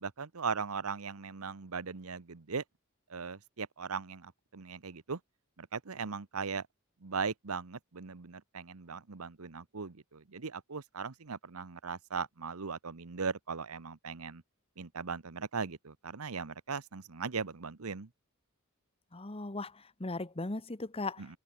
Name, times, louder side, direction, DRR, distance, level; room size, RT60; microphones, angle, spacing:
voice 1, 0.0-2.6 3.1-5.2 5.6-6.7 7.0-14.4 14.8-18.1, right 5 dB, 85° right, 1.0 m, -38 dB
voice 2, 19.1-21.4, left 2 dB, 25° left, 1.2 m, -38 dB
head